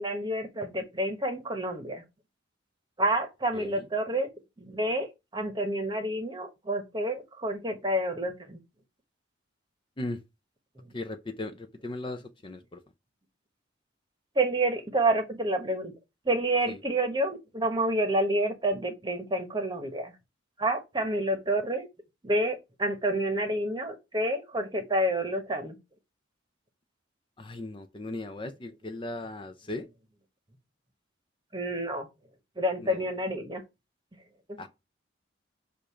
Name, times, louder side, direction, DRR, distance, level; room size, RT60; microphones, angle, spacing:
voice 1, 0.0-2.0 3.0-4.3 4.6-8.6 10.8-10.9 14.3-15.9 16.2-20.1 20.6-21.9 22.2-25.8 31.5-32.1 32.6-33.6 34.5-34.6, right 1 dB, 20° right, 1.1 m, -29 dB
voice 2, 10.9-12.8 16.7-16.8 27.4-29.9 32.8-33.1 34.6-34.7, left 2 dB, 25° left, 0.5 m, -37 dB
6.6 x 2.5 x 5.6 m
head